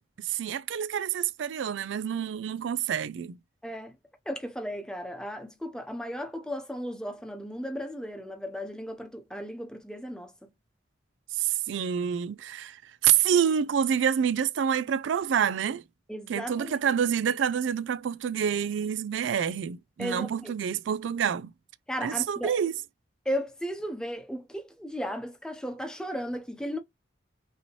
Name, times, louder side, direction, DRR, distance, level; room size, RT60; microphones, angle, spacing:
voice 1, 0.2-3.4 11.3-15.8 16.3-21.5 22.0-22.7, right 8 dB, 80° right, 0.4 m, -27 dB
voice 2, 3.6-3.9 4.3-10.5 16.1-16.9 20.0-20.5 21.9-22.5 23.3-26.8, equal, 5° left, 0.8 m, -35 dB
5.4 x 2.8 x 3.1 m
head